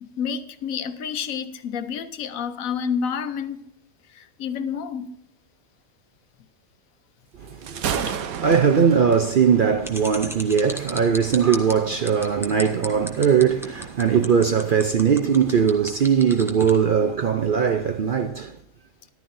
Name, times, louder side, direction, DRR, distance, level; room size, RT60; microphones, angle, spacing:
voice 1, 0.0-3.6 4.1-5.1, left 7 dB, 75° left, 1.2 m, -29 dB
voice 2, 7.4-18.6, right 7 dB, 55° right, 0.6 m, -20 dB
Thunder, 7.5-14.7, right 8 dB, 85° right, 1.2 m, -35 dB
sound 1, 9.8-16.8, equal, ahead, 1.1 m, -35 dB
14.0 x 12.0 x 2.6 m
omnidirectional pair, 1.5 m